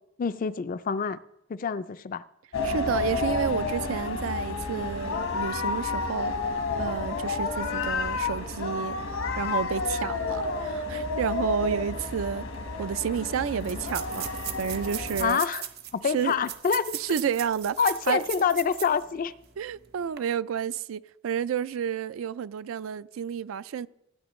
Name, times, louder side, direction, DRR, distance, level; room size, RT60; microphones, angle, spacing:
voice 1, 0.2-1.2 1.5-2.2 15.2-15.7 15.9-17.0 17.8-19.3, left 6 dB, 40° left, 0.3 m, -26 dB
sound 1, 2.5-15.3, left 3 dB, 80° left, 1.3 m, -30 dB
voice 2, 2.6-6.3 6.8-9.0 9.4-12.5 12.8-14.3 14.6-15.4 16.1-16.4 16.9-17.8 18.1-18.2 19.6-23.9, right 7 dB, 75° right, 0.3 m, -30 dB
sound 2, 12.5-12.6 12.8-12.9 13.6-19.0 19.4-19.5 20.0-20.2, right 10 dB, 50° right, 0.8 m, -38 dB
15.5 x 9.4 x 3.1 m
head